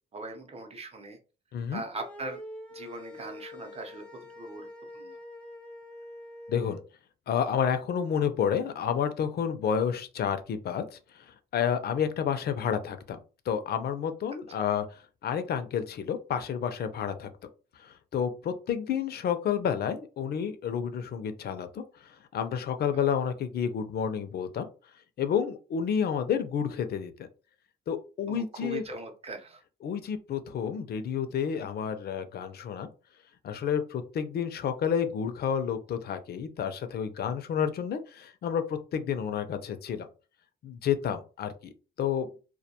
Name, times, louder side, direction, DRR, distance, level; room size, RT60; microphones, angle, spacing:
voice 1, 0.1-1.2 1.7-2.4 2.7-4.7 4.9-5.2 14.5-14.6 22.9-23.0 28.3-29.6, right 3 dB, 30° right, 4 dB, 0.7 m, -40 dB
sound 1, 1.9-6.8, left 1 dB, 5° left, 0.5 m, -45 dB
voice 2, 6.5-6.8 7.3-13.2 13.5-17.3 17.8-21.8 22.3-24.7 25.2-27.3 27.9-28.8 29.8-32.9 33.4-40.1 40.6-41.7 42.0-42.3, left 8 dB, 55° left, 9 dB, 0.4 m, -30 dB
2.2 x 2.2 x 2.7 m, 0.35 s
cardioid pair, 90°, 20 cm